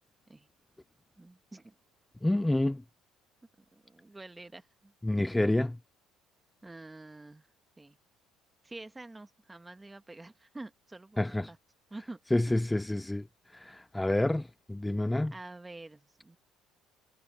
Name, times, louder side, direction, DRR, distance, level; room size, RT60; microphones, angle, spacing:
voice 1, 1.2-1.7 3.6-4.9 6.6-7.5 7.8-8.0 8.6-11.6 11.9-12.2 12.5-12.7 15.3-16.4, right 2 dB, 15° right, 1.8 m, -48 dB
voice 2, 2.2-2.8 5.0-5.8 11.2-11.5 12.3-13.2 13.5-15.3, left 1 dB, 10° left, 0.3 m, -28 dB
supercardioid pair, 85°, 0 cm